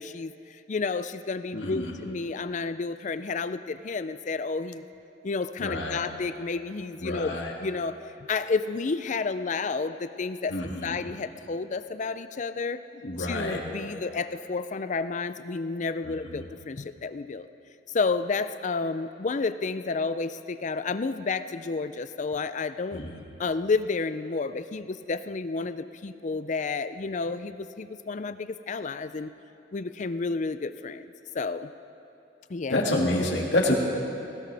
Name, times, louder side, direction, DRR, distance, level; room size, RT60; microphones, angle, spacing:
voice 1, 0.0-4.8 5.2-7.9 8.3-10.5 10.8-12.8 13.2-17.5 17.9-23.0 23.4-29.3 29.7-31.7 32.5-32.8, left 4 dB, 40° left, 12 dB, 0.4 m, -31 dB
voice 2, 1.5-1.9 5.6-6.0 7.0-7.5 10.5-11.0 12.9-13.6 16.0-16.4 22.9-23.2 32.7-33.7, left 1 dB, 80° left, -1 dB, 2.1 m, -28 dB
19.5 x 17.5 x 3.4 m, 2.8 s
head